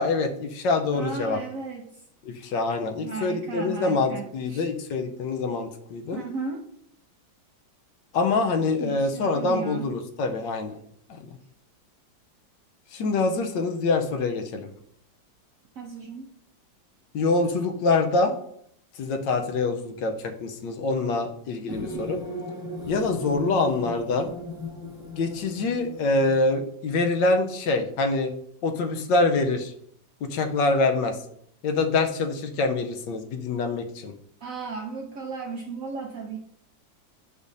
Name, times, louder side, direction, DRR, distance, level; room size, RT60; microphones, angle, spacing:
voice 1, 0.0-1.4 2.2-6.2 8.1-10.8 11.1-11.2 12.9-14.7 17.1-18.3 19.0-22.2 22.9-24.3 25.2-28.3 28.6-29.7 30.2-31.2 31.6-34.1, left 3 dB, 75° left, 6 dB, 1.3 m, -25 dB
voice 2, 0.9-1.8 3.0-4.7 6.1-6.7 8.8-9.9 15.8-16.3 21.8-22.0 34.4-36.4, right 4 dB, 65° right, 2 dB, 0.8 m, -35 dB
sound 1, 21.7-26.5, equal, 5° right, 0.7 m, -37 dB
8.1 x 5.2 x 2.6 m, 0.68 s
omnidirectional pair, 2.1 m